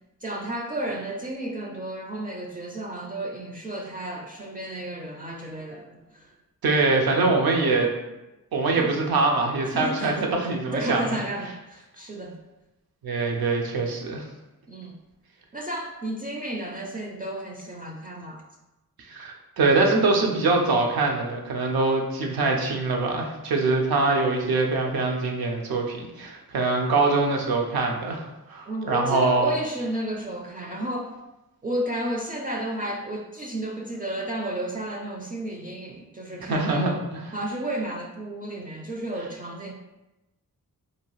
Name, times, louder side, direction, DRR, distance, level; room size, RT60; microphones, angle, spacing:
voice 1, 0.2-6.3 8.8-9.0 9.7-10.2 10.7-12.4 14.7-14.9 15.5-18.4 28.7-31.2 31.6-39.7, right 1 dB, 25° right, 0 dB, 0.4 m, -32 dB
voice 2, 6.6-7.9 8.5-11.0 13.0-14.3 19.1-29.5 36.5-37.3, right 3 dB, 80° right, 1 dB, 0.6 m, -23 dB
2.8 x 2.3 x 3.0 m, 0.99 s
cardioid pair, 55°, 36 cm